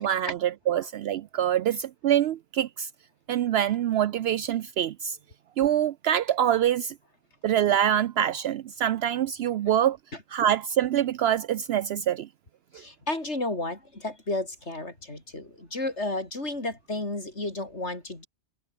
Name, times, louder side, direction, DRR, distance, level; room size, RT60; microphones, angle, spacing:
voice 1, 0.0-2.9 3.3-5.2 5.6-6.9 7.4-10.0 10.3-12.3, right 10 dB, 70° right, 0.8 m, -25 dB
voice 2, 12.7-18.3, left 2 dB, 90° left, 5.5 m, -32 dB
omnidirectional pair, 1.1 m